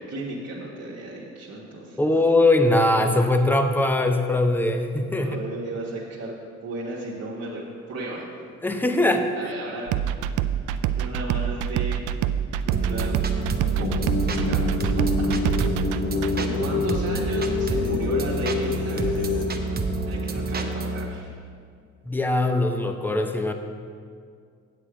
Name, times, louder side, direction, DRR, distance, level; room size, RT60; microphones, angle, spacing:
voice 1, 0.0-2.1 5.2-7.6 7.9-8.3 9.3-10.1 11.0-12.0 12.7-13.2 13.8-13.9 14.3-15.3 16.3-19.6 20.0-21.3, right 2 dB, 55° right, -5 dB, 1.5 m, -35 dB
voice 2, 2.0-5.4 8.6-9.3 22.1-23.5, left 2 dB, 5° left, 6 dB, 0.7 m, -21 dB
sound 1, 9.9-16.3, right 9 dB, 80° right, 0.4 m, -26 dB
sound 2, 12.7-21.1, right 3 dB, 30° right, 0.9 m, -28 dB
sound 3, 13.8-19.5, left 5 dB, 55° left, 0.8 m, -27 dB
8.7 x 7.5 x 4.9 m, 2.2 s
cardioid pair, 90°, 30 cm